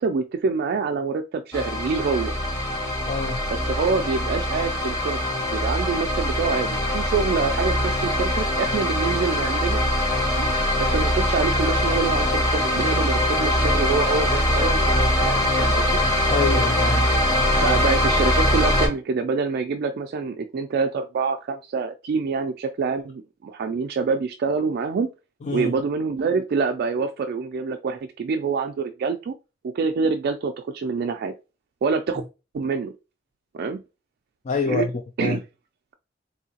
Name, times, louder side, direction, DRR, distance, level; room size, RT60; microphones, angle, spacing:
voice 1, 0.0-2.3 3.5-5.2 5.5-9.8 10.4-10.5 10.8-16.0 17.6-25.1 25.5-29.3 29.6-31.3 31.8-32.2 32.5-32.9 33.5-33.8 34.7-34.9 35.2-35.4, right 5 dB, 55° right, 0.3 m, -26 dB
sound 1, 1.5-18.9, left 1 dB, 15° left, 1.3 m, -22 dB
voice 2, 3.0-3.4 16.3-17.1 25.4-25.7 34.4-34.9 35.2-35.4, left 4 dB, 40° left, 0.3 m, -25 dB
3.7 x 2.7 x 2.8 m
head